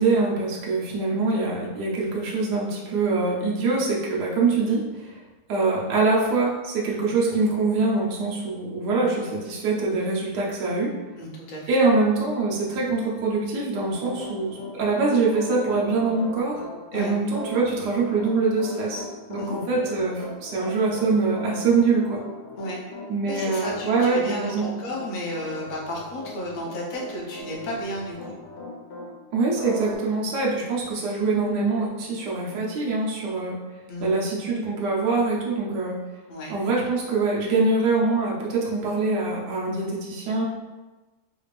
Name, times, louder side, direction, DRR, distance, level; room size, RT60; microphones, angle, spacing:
voice 1, 0.0-5.1 5.5-10.9 11.7-16.6 16.9-22.2 23.1-24.7 29.3-33.6 34.0-36.0 36.5-40.4, right 3 dB, 80° right, -3 dB, 1.3 m, -24 dB
voice 2, 11.2-11.7 16.9-17.1 19.4-19.6 22.6-22.8 23.3-28.3 33.9-34.1 36.3-36.5, equal, 50° left, -3 dB, 0.5 m, -33 dB
Piano, 13.9-29.1 29.6-30.0, left 2 dB, 75° left, 1.1 m, -38 dB
3.4 x 2.4 x 3.1 m, 1.2 s
omnidirectional pair, 1.7 m